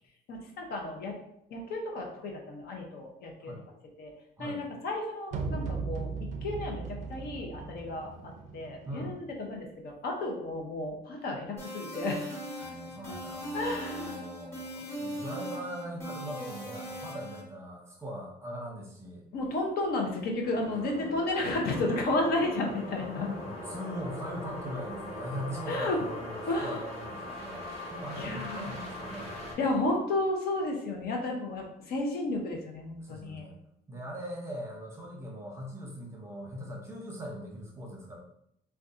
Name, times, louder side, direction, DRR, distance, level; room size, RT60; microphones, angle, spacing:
voice 1, 0.3-1.1 1.5-3.5 4.0-4.1 4.4-6.1 6.4-8.1 8.5-12.3 13.1-13.2 13.5-14.2 19.3-23.3 25.7-26.0 26.5-26.8 28.2-28.7 29.6-33.4, left 2 dB, 65° left, 1 dB, 0.7 m, -32 dB
sound 1, 5.3-9.3, right 4 dB, 45° right, 0.4 m, -37 dB
sound 2, 11.6-17.4, equal, 15° left, 1.3 m, -39 dB
voice 2, 12.6-19.3 23.4-27.6 27.9-29.4 33.0-33.5 33.9-38.2, equal, 15° right, -1 dB, 0.7 m, -40 dB
sound 3, 20.4-29.5, left 1 dB, 40° left, 1.3 m, -41 dB
2.6 x 2.3 x 3.6 m, 0.75 s
cardioid pair, 135°, 17 cm